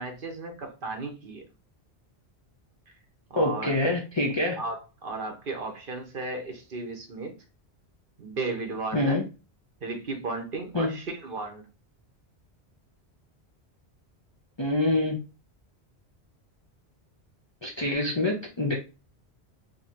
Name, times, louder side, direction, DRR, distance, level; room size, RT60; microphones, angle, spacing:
voice 1, 0.0-1.4 3.3-3.8 4.6-7.4 8.2-9.2 9.8-11.7, right 3 dB, 55° right, 0.9 m, -35 dB
voice 2, 3.4-4.6 8.9-9.2 10.7-10.9 14.6-15.2 17.6-18.7, left 2 dB, 35° left, 0.5 m, -25 dB
2.7 x 2.6 x 4.2 m
omnidirectional pair, 1.1 m